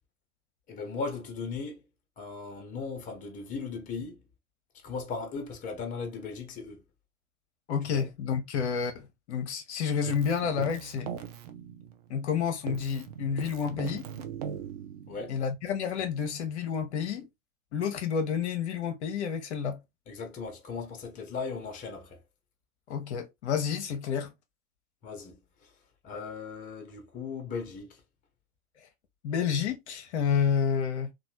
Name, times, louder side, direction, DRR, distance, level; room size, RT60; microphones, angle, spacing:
voice 1, 0.7-1.8 2.2-4.2 4.8-6.8 7.9-8.1 15.1-15.4 20.1-22.2 25.0-25.7 26.0-28.0, left 4 dB, 20° left, 0.8 m, -37 dB
voice 2, 7.7-11.1 12.1-14.1 15.3-17.3 17.7-19.8 22.9-24.3 29.2-31.1, left 7 dB, 50° left, 0.7 m, -30 dB
Keyboard (musical), 10.0-12.3 12.7-15.4, right 8 dB, 30° right, 0.4 m, -40 dB
3.0 x 2.2 x 2.9 m
figure-of-eight pair, 100°, 42 cm